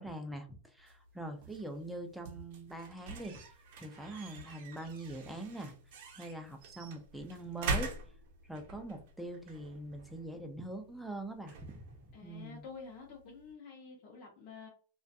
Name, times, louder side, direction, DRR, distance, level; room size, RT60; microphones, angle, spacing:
voice 1, 0.0-3.4 3.8-5.7 6.1-7.9 8.5-11.8 12.2-12.6, right 1 dB, ahead, 4 dB, 0.4 m, -43 dB
sound 1, 0.8-13.5, right 3 dB, 50° right, 0.7 m, -44 dB
voice 2, 12.1-14.7, left 5 dB, 35° left, -3 dB, 0.7 m, -49 dB
2.4 x 2.2 x 2.6 m, 0.41 s
supercardioid pair, 145°, 0 cm